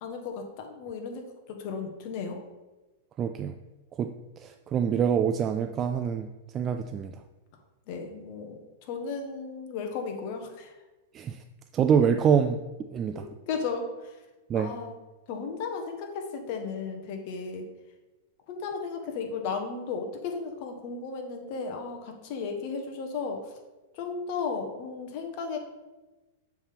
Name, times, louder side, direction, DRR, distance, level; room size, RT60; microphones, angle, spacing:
voice 1, 0.0-2.4 7.9-10.7 13.1-14.2 14.5-14.9 15.3-17.7 18.5-23.5 23.9-25.6, left 5 dB, 50° left, 4 dB, 1.2 m, -35 dB
voice 2, 3.2-3.5 4.0-6.3 6.5-7.1 11.1-11.4 11.7-12.6 12.9-13.3 14.5-14.7, right 7 dB, 25° right, 7 dB, 0.3 m, -25 dB
7.1 x 3.5 x 5.9 m, 1.1 s
supercardioid pair, 145°, 0 cm